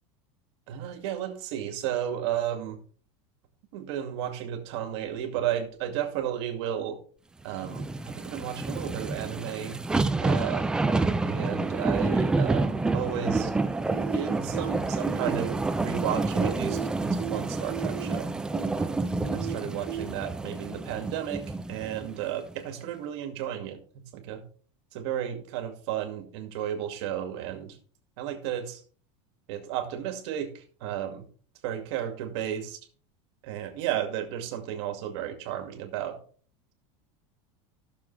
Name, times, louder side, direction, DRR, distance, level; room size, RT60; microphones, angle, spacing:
voice 1, 0.7-2.8 3.7-7.0 7.4-9.8 10.2-10.7 11.2-13.5 14.1-18.3 18.8-19.0 19.3-23.8 24.1-24.4 24.9-27.8 28.2-28.8 29.5-31.2 31.6-32.8 33.4-36.2, right 10 dB, 65° right, 5 dB, 2.3 m, -33 dB
sound 1, 7.6-22.1 22.5-22.6, right 3 dB, 5° right, 0.3 m, -28 dB
sound 2, 13.9-14.2 14.5-14.7 15.0-15.5 15.9-16.0 16.4-16.9 17.2-17.4 17.7-18.2 18.5-18.7 19.0-19.5 19.9-20.0, right 11 dB, 40° right, 1.4 m, -36 dB
15.0 x 6.9 x 3.3 m, 0.43 s
supercardioid pair, 165°, 15 cm